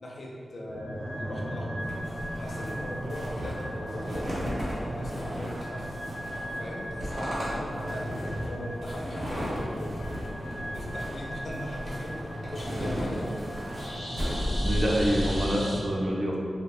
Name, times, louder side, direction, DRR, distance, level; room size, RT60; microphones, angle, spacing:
voice 1, 0.0-1.8 2.4-5.9 6.6-12.2 12.5-13.3, left 1 dB, 55° left, -2 dB, 0.4 m, -39 dB
sound 1, 0.7-15.8, equal, 15° right, 0.8 m, -37 dB
sound 2, 1.8-15.5, equal, 90° right, 1.0 m, -34 dB
voice 2, 14.6-16.4, equal, 40° right, -3 dB, 0.5 m, -26 dB
3.5 x 2.1 x 2.3 m, 2.2 s
wide cardioid pair, 120°, 0 cm